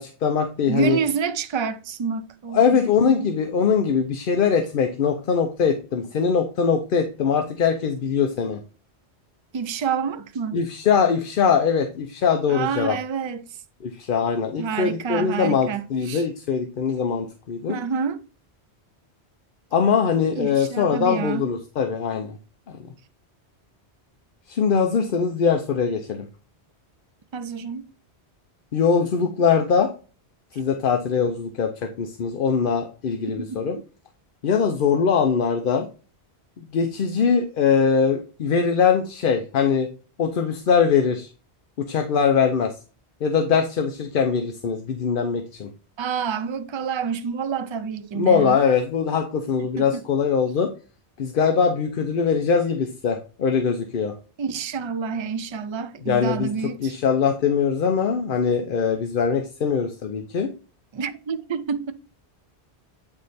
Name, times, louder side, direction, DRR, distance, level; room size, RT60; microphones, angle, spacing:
voice 1, 0.0-1.0 2.5-8.6 10.5-13.0 13.8-17.8 19.7-22.4 22.7-22.8 24.5-26.3 28.7-29.9 30.5-33.8 34.4-35.9 36.7-39.9 40.2-41.3 41.8-42.7 43.2-45.7 48.1-50.7 51.2-54.1 56.1-56.5 56.8-60.5, left 6 dB, 55° left, 0.8 m, -22 dB
voice 2, 0.7-3.3 9.5-10.6 12.5-13.4 14.6-16.2 17.7-18.2 20.4-21.4 27.3-27.9 33.4-33.6 46.0-48.6 49.8-50.0 54.4-56.9 60.9-61.9, right 6 dB, 50° right, 0.3 m, -28 dB
8.5 x 3.2 x 4.0 m
omnidirectional pair, 1.1 m